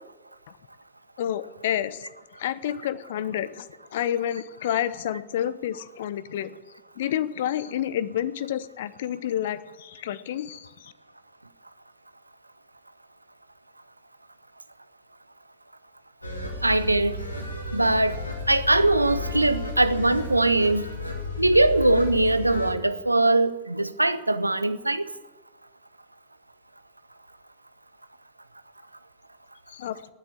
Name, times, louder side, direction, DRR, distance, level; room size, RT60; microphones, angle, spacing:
voice 1, 1.2-2.1 2.4-6.5 7.0-10.9 29.7-30.0, left 10 dB, 55° left, 0.8 m, -29 dB
sound 1, 16.2-22.7, left 2 dB, 85° left, 2.3 m, -33 dB
voice 2, 16.6-17.2 17.7-18.2 18.5-20.9 21.4-25.0, right 2 dB, 85° right, 0.7 m, -21 dB
19.0 x 8.2 x 9.0 m
figure-of-eight pair, 90°, 0 cm